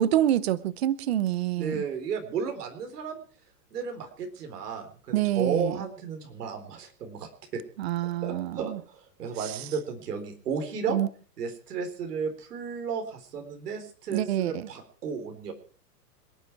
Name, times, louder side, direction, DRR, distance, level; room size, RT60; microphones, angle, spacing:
voice 1, 0.0-1.8 5.1-5.8 7.8-8.8 9.4-9.7 10.9-11.1 14.1-14.7, right 12 dB, 40° right, 19 dB, 0.8 m, -27 dB
voice 2, 1.6-3.2 3.7-7.6 8.2-11.0 11.4-15.5, right 5 dB, 75° right, 4 dB, 4.1 m, -33 dB
26.5 x 9.3 x 4.6 m, 0.41 s
hypercardioid pair, 170°, 47 cm